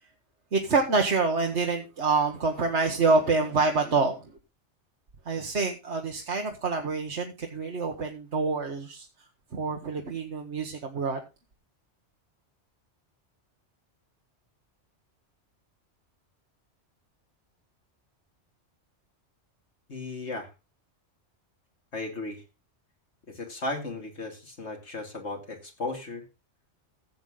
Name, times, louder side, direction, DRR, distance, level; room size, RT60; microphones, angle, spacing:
voice 1, 0.5-4.3 5.2-9.1 9.5-11.2, right 3 dB, 70° right, 3 dB, 1.6 m, -26 dB
voice 2, 19.9-20.5 21.9-22.4 23.3-26.3, left 2 dB, 70° left, 2 dB, 2.9 m, -35 dB
15.0 x 8.0 x 3.8 m, 0.26 s
omnidirectional pair, 1.2 m